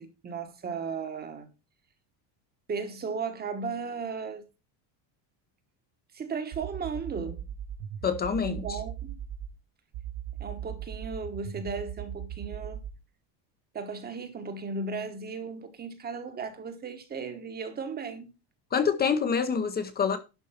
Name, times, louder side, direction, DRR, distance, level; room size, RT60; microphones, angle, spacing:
voice 1, 0.0-1.5 2.7-4.4 6.1-7.4 8.4-9.2 10.4-12.8 13.7-18.3, right 4 dB, 20° right, 1.1 m, -36 dB
sound 1, 6.5-9.5 9.9-13.0, right 10 dB, 55° right, 2.0 m, -38 dB
voice 2, 8.0-8.8 18.7-20.2, left 6 dB, 20° left, 0.7 m, -26 dB
11.5 x 4.5 x 5.7 m
cardioid pair, 170°, 46 cm